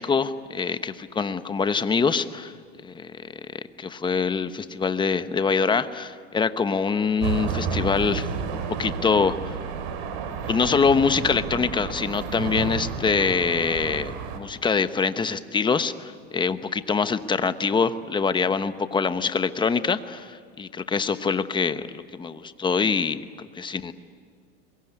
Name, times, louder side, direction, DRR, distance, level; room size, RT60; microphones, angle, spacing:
voice 1, 0.0-2.5 2.8-9.4 10.5-23.2 23.6-23.9, left 5 dB, 15° left, 12 dB, 1.0 m, -24 dB
sound 1, 7.2-14.4, right 6 dB, 60° right, 4.0 m, -31 dB
23.5 x 22.0 x 9.9 m, 2.1 s
supercardioid pair, 120°, 32 cm